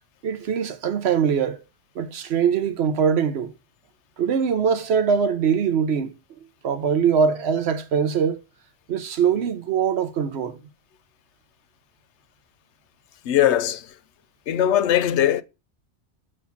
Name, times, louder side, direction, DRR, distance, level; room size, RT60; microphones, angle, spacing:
voice 1, 0.2-1.6 1.9-3.5 4.2-6.1 6.6-8.4 8.9-10.6, right 7 dB, 70° right, 1.0 m, -22 dB
voice 2, 13.3-13.8 14.5-15.4, left 11 dB, 85° left, 0.9 m, -20 dB
7.3 x 3.1 x 5.6 m
omnidirectional pair, 1.1 m